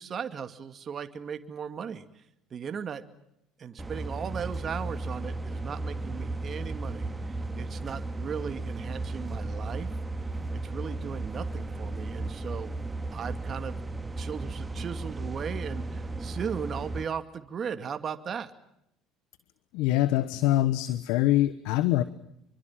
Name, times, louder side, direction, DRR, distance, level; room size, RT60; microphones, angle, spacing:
voice 1, 0.0-2.2 2.5-3.0 3.6-10.0 10.6-12.7 13.1-13.8 14.2-18.5, right 7 dB, 40° right, 9 dB, 2.3 m, -37 dB
sound 1, 3.8-17.0, right 2 dB, 20° right, 2.5 m, -35 dB
voice 2, 19.7-22.0, left 14 dB, 75° left, 15 dB, 1.2 m, -24 dB
27.0 x 24.0 x 7.5 m, 0.80 s
supercardioid pair, 80°, 0 cm